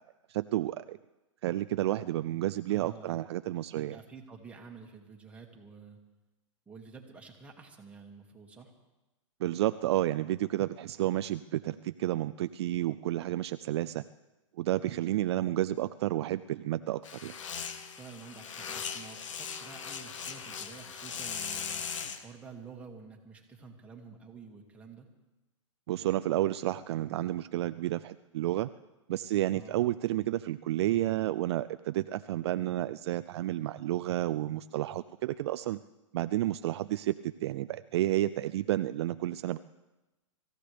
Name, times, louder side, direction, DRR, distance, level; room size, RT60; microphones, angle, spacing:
voice 1, 0.3-1.0 1.4-4.0 9.4-14.0 14.6-17.4 25.9-28.7 29.1-35.8 36.1-39.6, right 14 dB, 55° right, 13 dB, 0.4 m, -31 dB
voice 2, 2.7-3.2 3.7-6.0 6.7-8.7 17.8-25.1 29.5-29.8, right 5 dB, 10° right, 0 dB, 2.1 m, -50 dB
sound 1, 17.0-22.2, left 7 dB, 70° left, 1.4 m, -39 dB
25.0 x 15.0 x 3.4 m, 1.0 s
hypercardioid pair, 135°, 17 cm